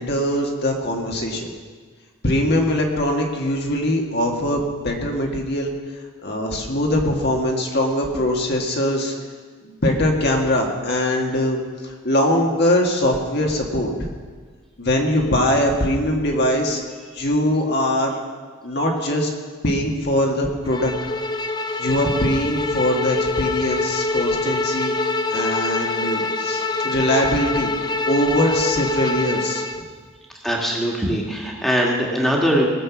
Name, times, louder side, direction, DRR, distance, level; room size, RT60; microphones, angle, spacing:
voice 1, 0.0-1.5 2.2-5.7 6.2-9.1 9.6-11.6 12.0-13.9 14.8-16.8 17.1-18.2 18.6-19.3 19.6-20.9 21.8-27.7 28.1-29.6, left 1 dB, 50° left, 1 dB, 1.8 m, -21 dB
Bowed string instrument, 20.7-29.8, left 3 dB, 20° left, 0.5 m, -25 dB
voice 2, 30.4-32.7, equal, ahead, -2 dB, 2.0 m, -21 dB
19.0 x 7.7 x 6.1 m, 1.6 s
head